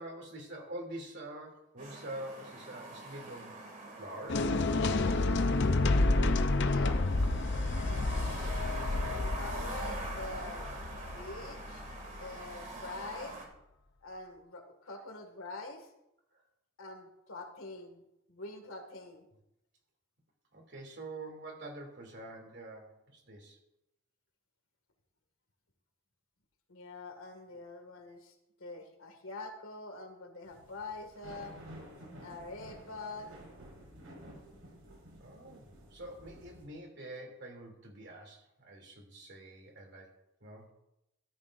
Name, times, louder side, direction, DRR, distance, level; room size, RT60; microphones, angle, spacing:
voice 1, 0.0-3.6 4.0-4.5 20.5-23.6 35.2-40.1 40.4-40.7, right 1 dB, 55° right, 1 dB, 2.9 m, -46 dB
sound 1, 1.8-13.5, right 2 dB, 40° right, 2.4 m, -45 dB
sound 2, 4.3-12.3, left 2 dB, 55° left, 0.6 m, -30 dB
voice 2, 6.5-7.0 7.8-8.4 9.1-10.7 11.1-13.4 14.0-15.9 16.8-18.0 18.3-19.2 26.7-28.3 28.6-31.5 32.2-33.3, left 2 dB, 85° left, 5 dB, 2.0 m, -45 dB
sound 3, 30.4-36.6, right 1 dB, 85° right, 5.5 m, -52 dB
14.5 x 13.5 x 2.6 m, 0.87 s
head